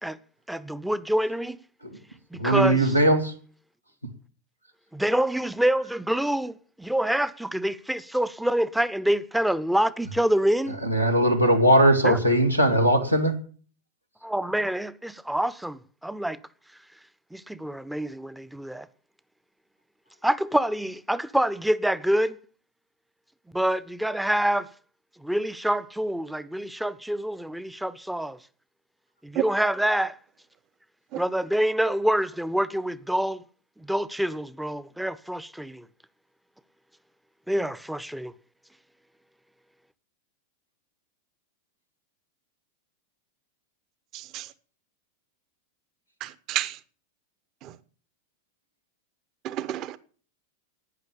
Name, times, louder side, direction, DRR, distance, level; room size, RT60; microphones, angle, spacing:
voice 1, 0.5-1.6 2.3-2.9 4.9-10.8 12.0-12.2 14.2-16.4 17.3-18.9 20.2-22.4 23.5-24.7 25.2-28.4 29.2-30.2 31.2-33.4 33.8-35.8 37.5-38.3, right 1 dB, 5° right, 0.7 m, -26 dB
voice 2, 2.4-3.3 10.8-13.4, right 1 dB, 90° right, 2.5 m, -19 dB
voice 3, 44.1-44.5 46.2-46.8 47.6-47.7 49.4-50.0, right 13 dB, 35° right, 1.0 m, -31 dB
12.5 x 9.5 x 8.7 m
figure-of-eight pair, 90°, 0 cm